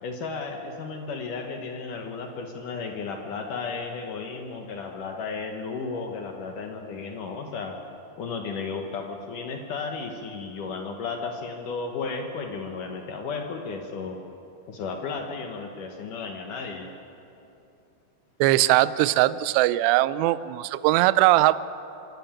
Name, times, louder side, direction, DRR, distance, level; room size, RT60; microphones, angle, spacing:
voice 1, 0.0-7.7 8.2-14.2 14.7-16.9, left 4 dB, 70° left, 3 dB, 2.0 m, -34 dB
voice 2, 18.4-21.6, right 16 dB, 80° right, 16 dB, 2.6 m, -20 dB
25.5 x 13.0 x 8.7 m, 2.8 s
omnidirectional pair, 5.2 m